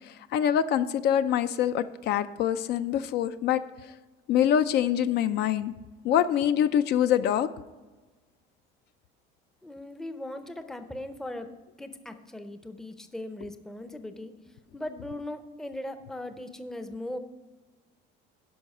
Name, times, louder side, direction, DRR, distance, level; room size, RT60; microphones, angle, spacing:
voice 1, 0.3-3.6 4.3-5.7 6.0-7.5, left 10 dB, 55° left, 12 dB, 0.4 m, -24 dB
voice 2, 9.6-11.5 11.8-14.3 14.7-17.2, left 1 dB, ahead, 8 dB, 0.5 m, -38 dB
11.5 x 5.4 x 5.4 m, 1.2 s
cardioid pair, 145°, 20 cm